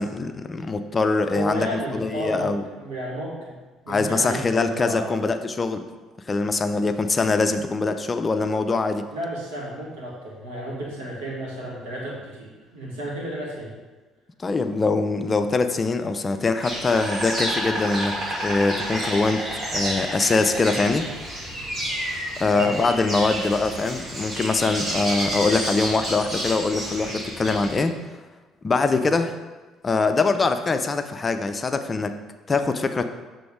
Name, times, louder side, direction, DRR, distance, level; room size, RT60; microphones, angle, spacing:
voice 1, 0.0-2.6 3.9-5.9 6.3-9.1 14.4-19.4 19.7-21.1 22.4-27.9 28.6-29.4 29.8-32.2 32.5-33.0, left 3 dB, 30° left, 9 dB, 0.4 m, -23 dB
voice 2, 1.3-3.6 3.9-5.2 9.1-13.7 22.5-22.8 28.9-29.1, equal, 70° right, -5 dB, 1.8 m, -32 dB
Insect, 16.6-27.8, equal, 45° right, 2.1 m, -30 dB
6.9 x 3.8 x 4.8 m, 1.2 s
figure-of-eight pair, 50°, 0 cm